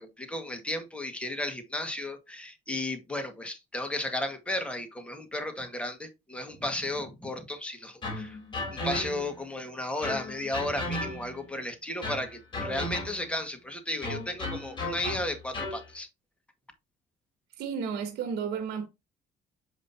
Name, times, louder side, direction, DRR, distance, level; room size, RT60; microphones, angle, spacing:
voice 1, 0.0-8.4 8.7-16.1, left 1 dB, 5° left, 1.7 m, -34 dB
sound 1, 8.0-9.4 10.0-11.5 12.0-13.4 14.0-15.9, left 1 dB, 30° left, 3.6 m, -35 dB
voice 2, 17.6-18.9, right 6 dB, 75° right, 1.3 m, -32 dB
7.6 x 5.1 x 2.8 m
cardioid pair, 110°, 17 cm